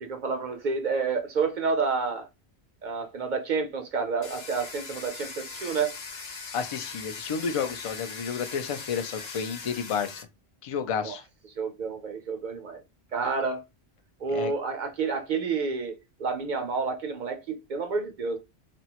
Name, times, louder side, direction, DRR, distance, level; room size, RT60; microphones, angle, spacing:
voice 1, 0.0-2.3 2.8-5.9 11.0-11.1 11.6-12.8 13.1-13.6 14.2-18.4, right 4 dB, 55° right, 0.6 m, -29 dB
Domestic sounds home sounds, 4.2-10.2, left 4 dB, 70° left, 0.9 m, -40 dB
voice 2, 6.5-10.2 10.6-11.2 14.3-14.5, left 6 dB, 55° left, 0.3 m, -31 dB
3.4 x 2.0 x 2.8 m
omnidirectional pair, 1.1 m